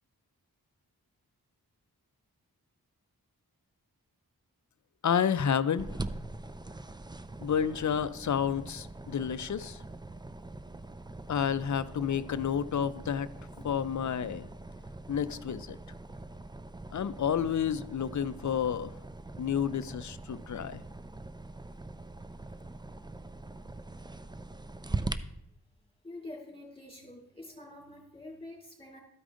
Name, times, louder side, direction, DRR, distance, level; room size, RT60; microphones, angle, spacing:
voice 1, 5.0-5.9 7.4-9.8 11.3-13.3 13.6-14.5 15.1-15.8 16.9-19.0 19.4-20.8, left 8 dB, 50° left, 14 dB, 0.5 m, -30 dB
sound 1, 5.8-25.1, right 2 dB, 10° right, 0.4 m, -42 dB
voice 2, 25.8-29.0, left 2 dB, 15° left, -1 dB, 2.9 m, -47 dB
13.0 x 4.9 x 3.8 m, 0.78 s
wide cardioid pair, 45°, 38 cm